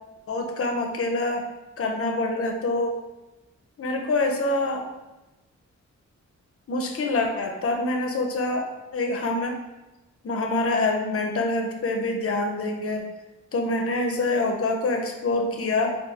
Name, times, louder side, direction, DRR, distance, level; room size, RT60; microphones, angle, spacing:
voice 1, 0.3-1.4 1.8-2.9 3.8-4.9 6.7-9.6 10.2-13.0 13.5-16.0, left 2 dB, 50° left, 3 dB, 0.5 m, -26 dB
3.6 x 2.4 x 2.7 m, 1.0 s
wide cardioid pair, 85°, 29 cm